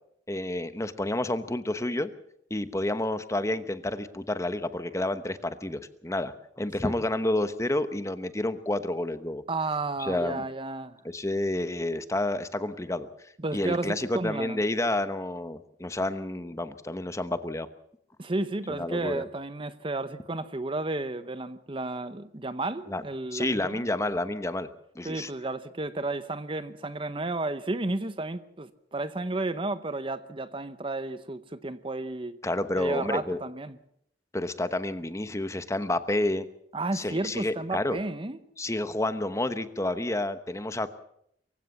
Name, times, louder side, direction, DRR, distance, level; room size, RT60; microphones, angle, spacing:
voice 1, 0.3-2.1 2.5-9.4 10.0-10.4 11.0-13.1 13.5-17.7 18.7-19.2 22.9-23.0 23.3-24.7 24.9-25.3 32.4-33.4 34.3-36.5 36.9-38.0 38.6-40.9, left 1 dB, 15° left, 1.0 m, -29 dB
voice 2, 9.5-11.0 13.4-14.6 18.2-23.8 25.0-32.4 32.7-33.8 36.7-38.4, right 2 dB, 30° right, 0.8 m, -32 dB
23.5 x 16.0 x 7.2 m
head